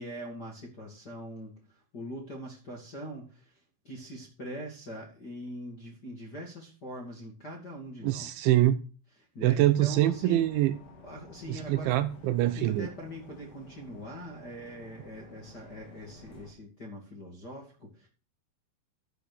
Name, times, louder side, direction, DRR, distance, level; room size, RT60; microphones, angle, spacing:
voice 1, 0.0-8.5 9.2-10.4 11.0-12.0 12.4-18.1, equal, 35° left, 1.8 m, -42 dB
voice 2, 8.0-8.8 9.4-10.7 11.5-12.9, right 14 dB, 80° right, 2.8 m, -25 dB
sound 1, 9.8-16.5, left 1 dB, 60° left, 5.3 m, -51 dB
13.0 x 6.9 x 6.3 m
omnidirectional pair, 5.7 m